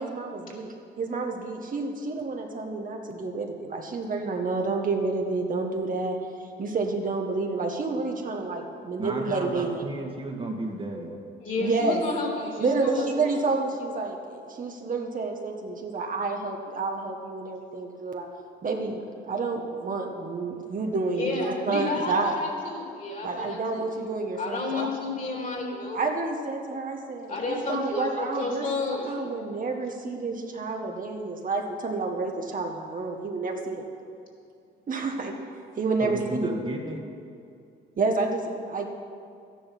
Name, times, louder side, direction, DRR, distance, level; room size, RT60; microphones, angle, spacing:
voice 1, 0.0-9.8 11.6-12.0 12.6-18.3 18.6-22.4 23.2-24.9 25.9-28.7 29.0-33.8 34.9-35.3 35.8-36.5 38.0-38.9, right 3 dB, 45° right, 2 dB, 1.5 m, -29 dB
voice 2, 9.0-11.1 36.0-37.0, right 1 dB, 25° right, 0 dB, 1.8 m, -33 dB
voice 3, 11.4-13.4 21.2-23.9 24.4-26.0 27.3-29.2, left 3 dB, 45° left, -1 dB, 3.5 m, -31 dB
12.5 x 10.5 x 6.0 m, 2.4 s
cardioid pair, 90°, 20 cm